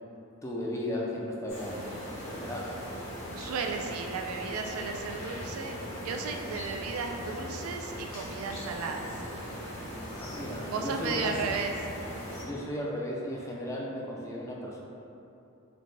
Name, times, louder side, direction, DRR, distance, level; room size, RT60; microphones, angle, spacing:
voice 1, 0.4-2.8 10.2-11.3 12.4-14.8, left 1 dB, 15° left, -3 dB, 0.3 m, -35 dB
sound 1, 1.5-12.4, equal, 80° left, 1.2 m, -39 dB
voice 2, 3.3-9.1 10.7-11.7, right 4 dB, 85° right, 3 dB, 0.3 m, -34 dB
4.0 x 2.1 x 3.2 m, 2.8 s
head